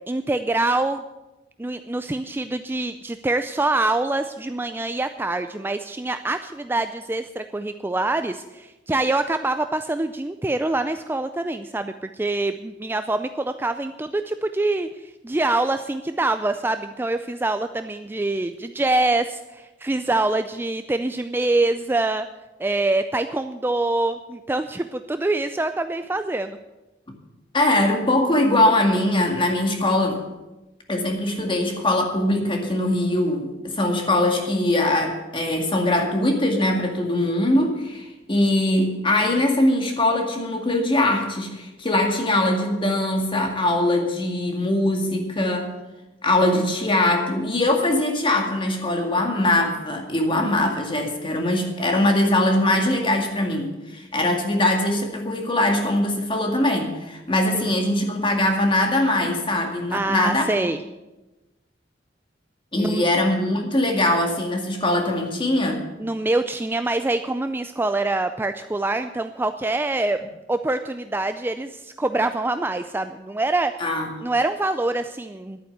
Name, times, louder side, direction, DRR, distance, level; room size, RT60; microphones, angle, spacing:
voice 1, 0.1-1.0 1.6-14.9 15.2-22.3 22.6-26.6 50.3-50.7 57.5-57.7 59.9-60.8 62.8-63.0 66.0-70.2 70.5-73.7 74.2-75.6, right 2 dB, 10° right, 9 dB, 0.4 m, -25 dB
voice 2, 27.5-30.2 30.9-45.7 46.2-60.4 62.7-65.8 73.8-74.1, left 1 dB, 25° left, 3 dB, 2.1 m, -22 dB
11.5 x 8.9 x 8.0 m, 1.1 s
head